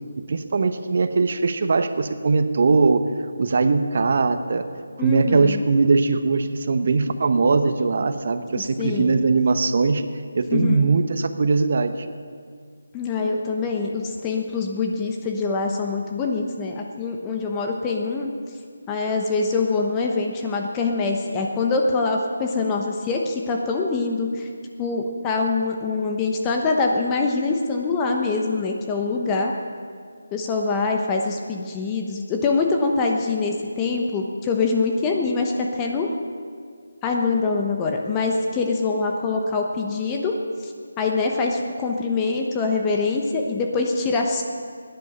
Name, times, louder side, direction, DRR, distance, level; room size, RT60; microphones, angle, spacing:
voice 1, 0.3-3.0 3.4-4.7 5.0-10.0 10.3-12.1, right 4 dB, 50° right, 9 dB, 1.0 m, -20 dB
voice 2, 5.0-5.6 8.8-9.2 10.5-10.9 12.9-18.3 18.9-24.5 24.8-29.5 30.3-36.1 37.0-40.4 40.6-40.7 41.0-44.4, left 4 dB, 15° left, 1 dB, 1.1 m, -24 dB
16.5 x 10.5 x 6.8 m, 2.1 s
figure-of-eight pair, 160°, 0 cm